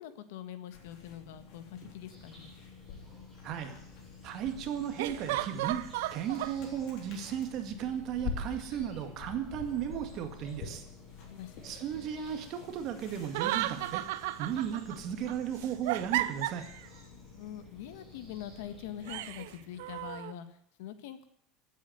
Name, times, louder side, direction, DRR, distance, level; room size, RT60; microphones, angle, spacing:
voice 1, 0.0-2.5 11.2-11.5 17.1-21.3, left 10 dB, 80° left, 11 dB, 1.6 m, -44 dB
sound 1, 0.7-19.3, left 5 dB, 45° left, 3.7 m, -47 dB
sound 2, 1.8-1.9 5.0-6.6 13.2-15.0 15.3-16.9 19.1-20.3, right 16 dB, 75° right, 0.7 m, -34 dB
sound 3, 2.1-20.2, equal, 5° left, 4.5 m, -57 dB
voice 2, 3.4-3.8 4.2-5.8 6.1-10.8 11.6-14.0 14.4-16.7, right 9 dB, 35° right, 6 dB, 1.9 m, -35 dB
15.5 x 8.4 x 9.4 m, 0.68 s
cardioid pair, 180°, 0 cm